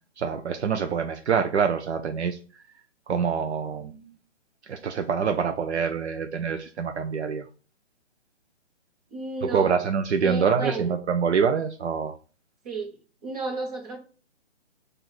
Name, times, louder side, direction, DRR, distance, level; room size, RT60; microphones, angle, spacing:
voice 1, 0.2-2.4 3.1-4.1 4.7-7.5 9.4-12.1, right 6 dB, 70° right, 6 dB, 0.6 m, -25 dB
voice 2, 9.1-9.8 10.2-10.9 12.6-14.0, right 3 dB, 35° right, 0 dB, 1.4 m, -33 dB
4.4 x 2.7 x 4.0 m, 0.36 s
hypercardioid pair, 175°, 35 cm